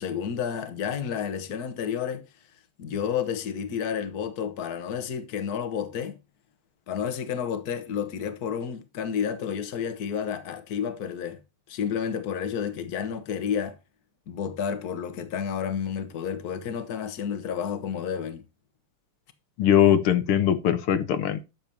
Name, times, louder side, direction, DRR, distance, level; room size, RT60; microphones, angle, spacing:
voice 1, 0.0-2.2 2.8-6.2 6.9-11.4 11.7-13.7 14.3-18.4, left 7 dB, 50° left, 1.6 m, -30 dB
voice 2, 19.6-21.4, left 10 dB, 85° left, 2.0 m, -21 dB
12.0 x 7.1 x 2.8 m
omnidirectional pair, 2.3 m